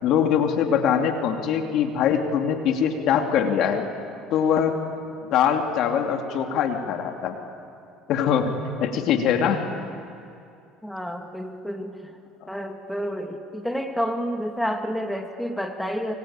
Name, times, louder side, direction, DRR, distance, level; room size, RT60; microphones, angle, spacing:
voice 1, 0.0-3.8 4.3-4.8 5.3-7.4 8.1-8.5 8.8-9.6, left 8 dB, 65° left, 4 dB, 2.7 m, -22 dB
voice 2, 10.8-16.1, equal, ahead, 4 dB, 2.3 m, -30 dB
25.5 x 24.5 x 8.9 m, 2.5 s
supercardioid pair, 90°, 0 cm